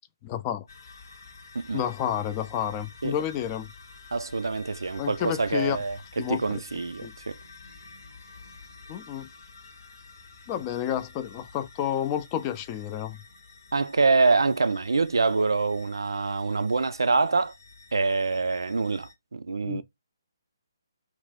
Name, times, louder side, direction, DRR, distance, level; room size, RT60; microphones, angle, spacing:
voice 1, 0.2-0.6 1.7-3.7 5.0-5.8 6.2-6.4 7.0-7.1 8.9-9.3 10.5-13.2 19.6-19.8, left 10 dB, 25° left, 0.4 m, -30 dB
sound 1, 0.7-19.1, left 4 dB, 55° left, 0.8 m, -50 dB
voice 2, 4.1-7.4 13.7-17.5 17.9-19.8, right 4 dB, 75° right, 0.3 m, -25 dB
2.5 x 2.3 x 3.4 m
figure-of-eight pair, 145°, 2 cm